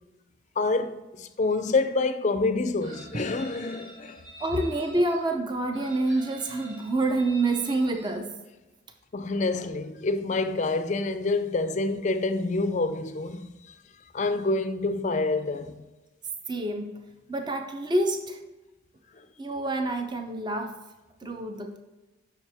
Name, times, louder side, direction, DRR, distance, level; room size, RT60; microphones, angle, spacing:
voice 1, 0.6-4.2 9.1-13.5 14.1-15.8, left 3 dB, 35° left, 0.4 m, -27 dB
Chicken rooster, 2.8-5.2 5.7-8.2, right 1 dB, 70° right, 2.2 m, -47 dB
voice 2, 4.4-8.3 16.5-16.9 17.3-18.4 19.4-20.8 21.2-21.8, right 2 dB, 20° right, 0.5 m, -27 dB
7.2 x 5.8 x 3.4 m
head